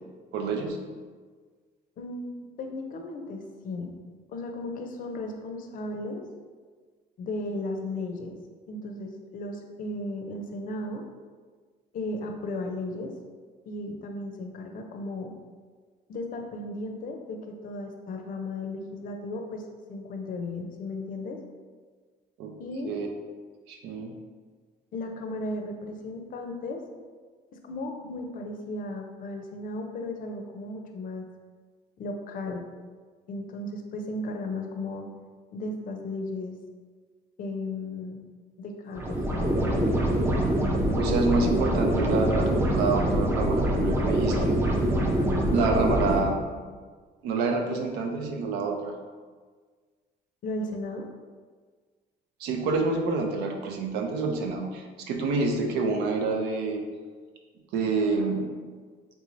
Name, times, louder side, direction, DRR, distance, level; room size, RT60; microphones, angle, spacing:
voice 1, 0.3-0.8 22.4-22.5 22.8-23.1 23.7-24.1 41.0-44.6 45.5-46.3 47.2-48.9 52.4-56.8 57.7-58.5, right 3 dB, 85° right, 3 dB, 0.5 m, -27 dB
voice 2, 2.0-2.3 2.6-3.9 4.3-6.2 7.2-8.3 8.7-11.0 11.9-13.1 13.7-15.3 16.1-19.6 19.9-21.4 22.6-22.9 24.9-26.8 27.6-31.3 32.0-32.6 33.3-35.1 35.5-36.6 37.4-38.2 38.6-39.6 46.5-46.6 50.4-51.1, left 2 dB, 55° left, 3 dB, 0.5 m, -35 dB
sound 1, 38.9-46.2, right 1 dB, 15° right, 0.5 m, -24 dB
3.5 x 3.1 x 2.5 m, 1.5 s
cardioid pair, 110°, 17 cm